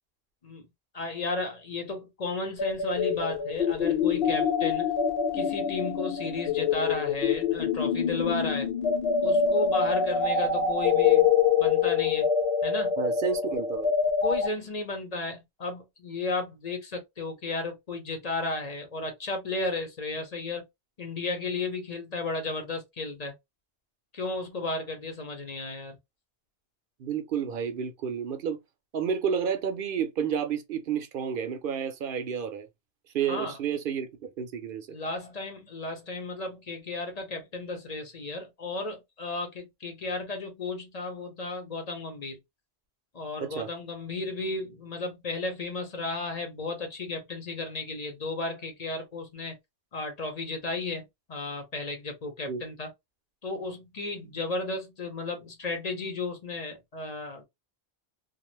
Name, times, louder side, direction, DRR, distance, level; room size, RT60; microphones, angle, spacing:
voice 1, 0.9-4.9 5.3-8.7 9.2-11.3 11.6-12.3 12.6-12.9 14.2-20.7 21.0-23.3 24.1-26.0 33.3-33.6 34.9-42.4 43.1-49.6 49.9-51.0 51.3-52.9 53.4-57.4, left 3 dB, 45° left, 0.8 m, -34 dB
sound 1, 2.6-14.5, left 6 dB, 75° left, 1.0 m, -25 dB
voice 2, 13.0-13.9 27.0-28.6 28.9-32.7 33.1-34.9 43.4-43.7 52.5-52.6, right 7 dB, 65° right, 0.7 m, -30 dB
2.5 x 2.3 x 3.1 m
omnidirectional pair, 1.0 m